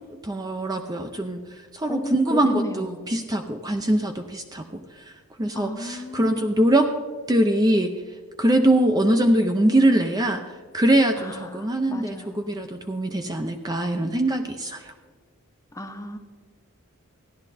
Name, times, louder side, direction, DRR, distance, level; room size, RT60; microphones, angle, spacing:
voice 1, 0.2-1.4 1.7-4.6 5.4-6.9 7.3-7.9 8.4-10.4 10.7-14.9, right 1 dB, 15° right, 5 dB, 0.5 m, -22 dB
voice 2, 1.9-3.2 5.5-6.4 11.2-12.5 15.7-16.2, left 1 dB, 15° left, 6 dB, 0.7 m, -34 dB
14.5 x 11.0 x 4.1 m, 1.5 s
head